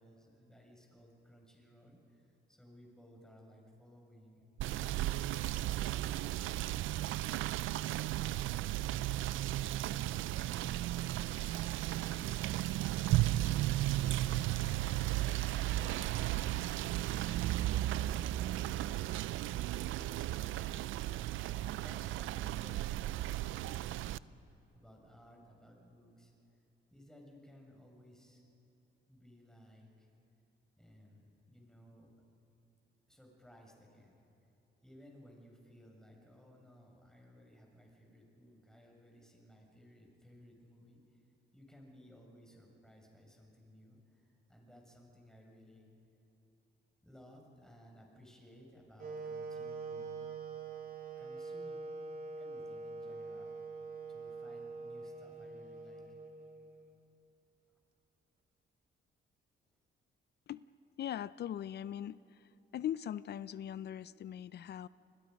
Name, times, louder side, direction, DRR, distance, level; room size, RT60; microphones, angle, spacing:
voice 1, 0.0-7.0 7.6-9.5 9.9-14.9 15.5-17.3 17.9-19.0 19.8-20.6 21.6-26.3 26.9-28.4 29.1-30.1 30.8-32.1 33.1-34.2 34.8-41.2 41.5-45.9 47.0-50.2 51.2-51.9 52.4-53.6 54.1-56.2, equal, 5° left, 0 dB, 6.3 m, -59 dB
Rain / Motor vehicle (road), 4.6-24.2, right 15 dB, 80° right, 0.5 m, -35 dB
Wind instrument woodwind instrument, 49.0-57.0, right 4 dB, 50° right, 2.3 m, -44 dB
voice 2, 61.0-62.2 62.7-64.9, left 10 dB, 55° left, 18 dB, 0.5 m, -40 dB
30.0 x 21.5 x 5.3 m, 3.0 s
cardioid pair, 90°, 20 cm